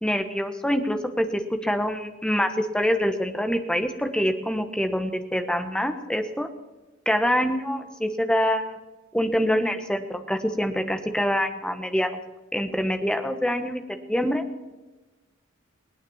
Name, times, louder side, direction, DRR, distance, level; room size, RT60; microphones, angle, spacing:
voice 1, 0.0-6.5 7.0-8.8 9.1-12.2 12.5-13.8 14.1-14.4, equal, 5° left, 7 dB, 1.2 m, -25 dB
19.5 x 9.2 x 7.2 m, 1.1 s
head